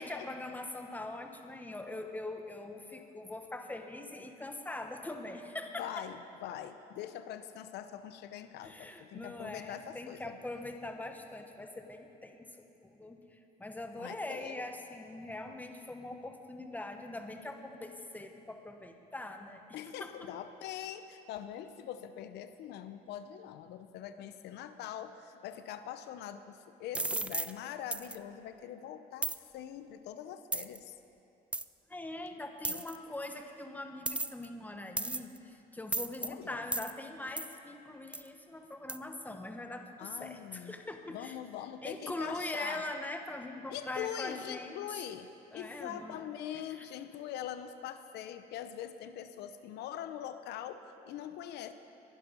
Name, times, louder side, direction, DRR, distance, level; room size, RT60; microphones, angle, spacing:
voice 1, 0.0-6.0 8.6-20.3 31.9-41.4 41.8-45.0 45.5-46.3 46.5-46.9, left 2 dB, 10° left, 5 dB, 1.3 m, -42 dB
voice 2, 5.8-10.4 14.0-14.6 19.7-30.9 32.7-32.9 36.2-36.6 40.0-40.8 41.1-42.9 43.7-51.7, left 10 dB, 80° left, 10 dB, 0.7 m, -43 dB
sound 1, 26.9-27.5 27.9-28.2 29.2-29.4 30.5-30.8 31.5-31.6 32.6-33.0 34.1-34.5 35.0-35.4 35.9-36.3 36.7-36.9 37.4-37.5 38.1-38.3 38.9-39.0, right 2 dB, 5° right, 0.3 m, -34 dB
22.0 x 11.0 x 5.4 m, 2.9 s
cardioid pair, 110°, 17 cm